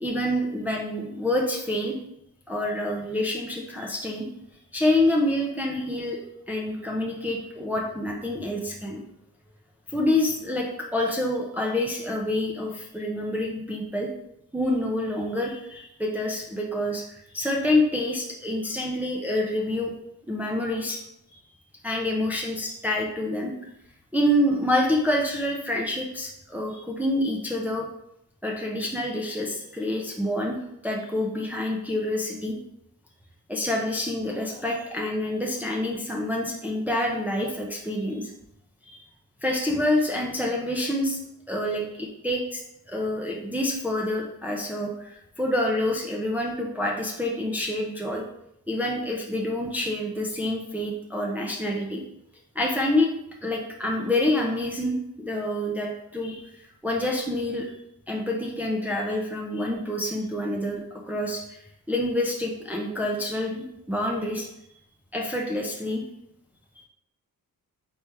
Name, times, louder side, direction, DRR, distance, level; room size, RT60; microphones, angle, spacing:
voice 1, 0.0-1.9 2.5-4.3 4.7-6.2 6.5-9.0 9.9-14.1 14.5-19.9 20.3-21.0 21.8-23.5 24.1-27.9 28.4-30.6 30.8-32.6 33.5-38.3 38.9-39.0 39.4-41.2 41.5-42.6 42.9-48.3 48.7-52.0 52.5-53.1 53.4-57.7 58.1-64.5 65.1-66.0 66.8-66.9, left 1 dB, 5° right, -1 dB, 0.5 m, -27 dB
4.3 x 3.3 x 3.4 m, 0.78 s
wide cardioid pair, 125°, 36 cm